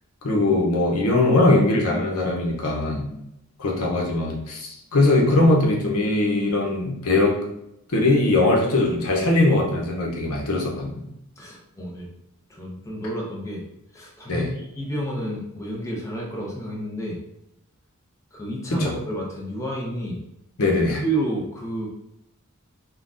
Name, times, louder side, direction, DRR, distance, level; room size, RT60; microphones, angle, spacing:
voice 1, 0.2-3.1 3.6-7.4 7.9-11.0 14.3-14.5 18.8-18.9 20.6-21.0, left 2 dB, 80° left, -1 dB, 0.8 m, -20 dB
voice 2, 11.4-12.1 12.5-13.7 13.9-17.2 18.3-20.2 21.0-21.9, right 1 dB, 15° left, -3 dB, 0.6 m, -30 dB
3.8 x 2.2 x 2.5 m, 0.85 s
head